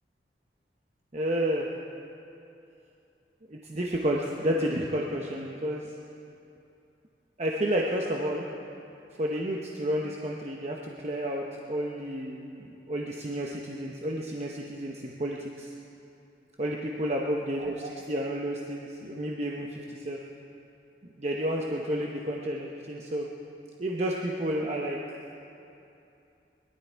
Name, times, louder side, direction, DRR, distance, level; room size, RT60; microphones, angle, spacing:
voice 1, 1.1-1.7 3.5-5.9 7.4-8.5 9.2-15.7 16.6-20.2 21.2-23.3 23.8-25.0, equal, 40° right, -1 dB, 0.9 m, -31 dB
21.5 x 12.0 x 4.6 m, 2.7 s
head